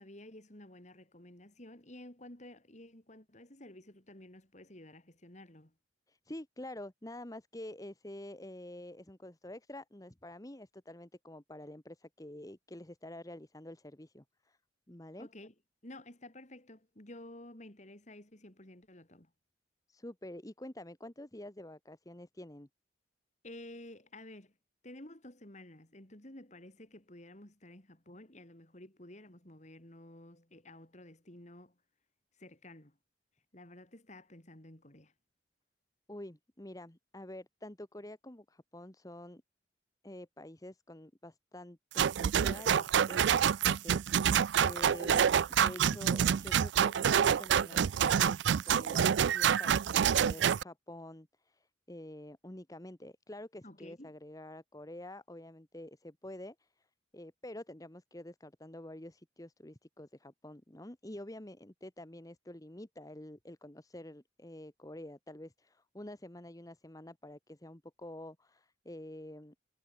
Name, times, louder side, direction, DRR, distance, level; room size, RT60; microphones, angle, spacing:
voice 1, 0.0-5.7 15.2-15.5 15.8-19.3 23.4-24.5 24.8-31.7 32.4-33.0 33.5-35.1 53.6-54.1, left 1 dB, 40° left, 3.2 m, -52 dB
voice 2, 6.1-14.6 14.9-15.3 19.9-22.7 36.1-39.4 40.0-56.9 57.1-69.5, left 1 dB, 20° left, 1.2 m, -48 dB
sound 1, 42.0-50.6, right 8 dB, 70° right, 0.4 m, -27 dB
head